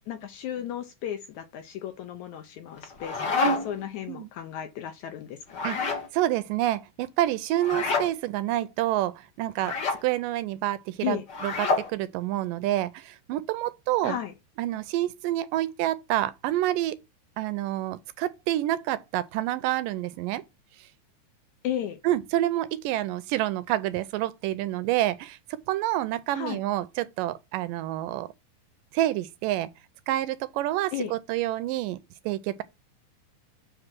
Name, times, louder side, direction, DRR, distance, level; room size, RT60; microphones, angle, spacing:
voice 1, 0.1-5.9 11.0-11.2 14.0-14.3 21.6-22.0 26.3-26.6 30.9-31.1, left 11 dB, 75° left, 1.8 m, -34 dB
sound 1, 2.8-3.8 5.5-6.1 7.6-8.1 9.6-10.0 11.3-11.9, left 3 dB, 45° left, 1.5 m, -27 dB
voice 2, 6.1-9.7 10.0-11.5 11.9-14.2 14.6-17.0 17.4-20.4 22.0-25.4 25.7-28.3 28.9-29.7 30.1-32.0 32.3-32.6, right 14 dB, 80° right, 2.1 m, -28 dB
8.0 x 3.4 x 5.9 m
omnidirectional pair, 4.0 m